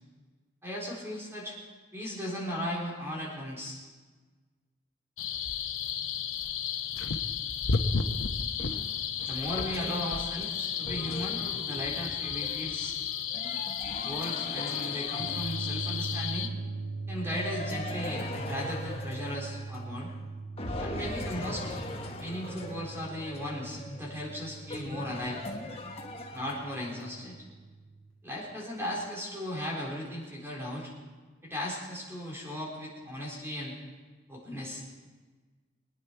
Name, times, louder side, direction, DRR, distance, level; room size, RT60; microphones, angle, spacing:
voice 1, 0.6-1.6 1.9-3.8 9.2-13.0 14.0-16.5 17.1-20.1 20.8-21.8 22.2-25.4 26.3-27.4 28.2-30.9 31.4-33.8 34.3-34.8, equal, 15° right, -4 dB, 4.1 m, -37 dB
sound 1, 5.2-16.5, left 7 dB, 85° left, 1.0 m, -33 dB
sound 2, 8.6-16.0 17.3-20.2 20.6-27.0, left 2 dB, 30° left, 1.2 m, -41 dB
sound 3, 15.2-28.1, right 3 dB, 80° right, 4.5 m, -41 dB
23.0 x 9.8 x 4.6 m, 1.4 s
head